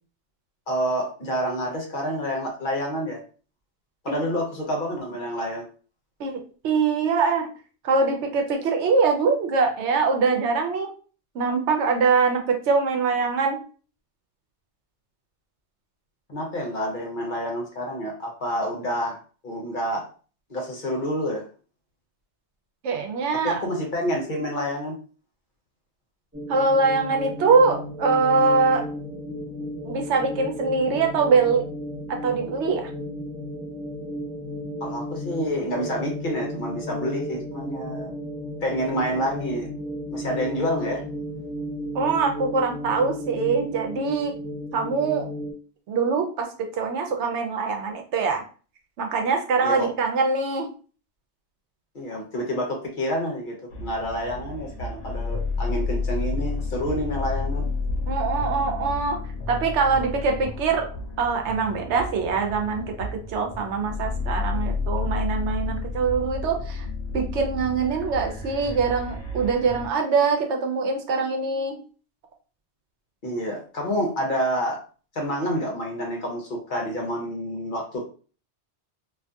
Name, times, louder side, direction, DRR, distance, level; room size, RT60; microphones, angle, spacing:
voice 1, 0.7-3.2 4.0-5.6 16.3-19.2 19.4-20.1 20.5-21.5 23.3-25.0 34.8-38.1 38.6-39.7 40.1-41.0 49.6-49.9 51.9-57.7 73.2-74.8 75.1-78.0, equal, 50° left, 0 dB, 0.8 m, -28 dB
voice 2, 6.2-7.5 7.8-10.9 11.3-13.6 22.8-23.6 26.5-28.9 29.8-31.6 32.1-32.9 41.9-44.3 44.7-45.3 45.9-48.4 49.0-50.7 58.1-59.2 59.5-60.9 61.2-66.9 67.1-71.8, right 4 dB, 80° right, 3 dB, 0.9 m, -23 dB
sound 1, 26.3-45.5, left 1 dB, 10° right, 1.4 m, -34 dB
sound 2, 53.7-69.9, left 3 dB, 75° left, 0.9 m, -31 dB
2.6 x 2.5 x 2.3 m, 0.39 s
omnidirectional pair, 1.2 m